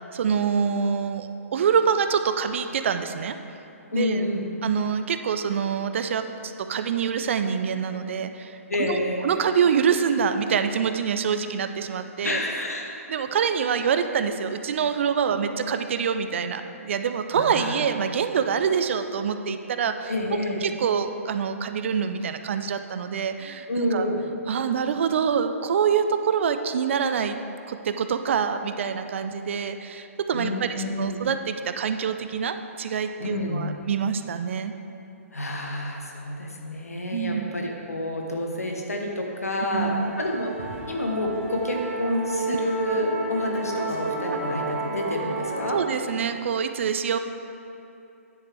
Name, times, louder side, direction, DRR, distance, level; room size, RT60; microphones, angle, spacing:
voice 1, 0.1-3.4 3.9-4.2 4.6-9.0 9.2-12.4 13.1-20.1 20.6-24.1 24.5-27.4 27.7-34.7 37.1-37.5 39.7-40.1 42.5-42.6 45.7-47.2, right 7 dB, 55° right, 9 dB, 0.5 m, -25 dB
voice 2, 3.9-4.5 8.7-9.3 12.2-12.9 15.3-15.4 17.3-17.8 20.0-20.6 23.7-24.2 30.3-31.3 33.2-33.7 35.3-45.8, left 1 dB, 80° left, 1 dB, 1.1 m, -29 dB
Musical instrument, 39.7-45.7, right 2 dB, 70° right, 1.8 m, -31 dB
9.7 x 8.1 x 3.4 m, 2.8 s
figure-of-eight pair, 125°, 8 cm